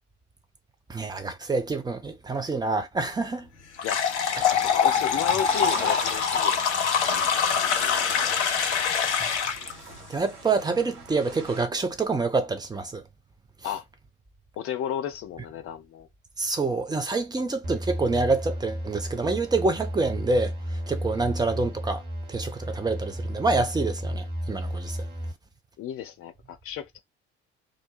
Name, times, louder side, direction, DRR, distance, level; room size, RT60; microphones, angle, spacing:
voice 1, 0.9-3.5 9.2-9.3 10.1-13.0 16.4-20.5 20.9-22.0 22.3-25.0, right 3 dB, 10° right, 0.6 m, -27 dB
sound 1, 3.8-9.7, left 7 dB, 85° left, 0.5 m, -24 dB
voice 2, 4.4-6.6 7.1-7.9 13.6-13.9 14.6-16.1 21.1-21.2 25.8-27.0, left 9 dB, 40° left, 0.6 m, -34 dB
sound 2, 4.9-11.7, right 5 dB, 60° right, 1.0 m, -43 dB
sound 3, 17.6-25.3, equal, 30° right, 1.3 m, -33 dB
2.5 x 2.1 x 3.1 m
figure-of-eight pair, 55°, 34 cm